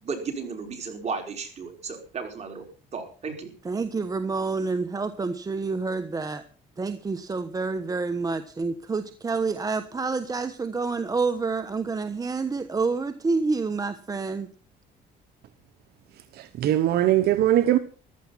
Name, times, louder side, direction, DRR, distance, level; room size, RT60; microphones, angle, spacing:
voice 1, 0.0-2.6 2.9-3.5, right 5 dB, 40° right, 5.1 m, -34 dB
voice 2, 3.6-6.4 6.8-14.5, right 4 dB, 20° right, 1.1 m, -28 dB
voice 3, 16.4-17.8, right 12 dB, 70° right, 1.0 m, -21 dB
15.0 x 12.0 x 5.7 m
cardioid pair, 110°, 17 cm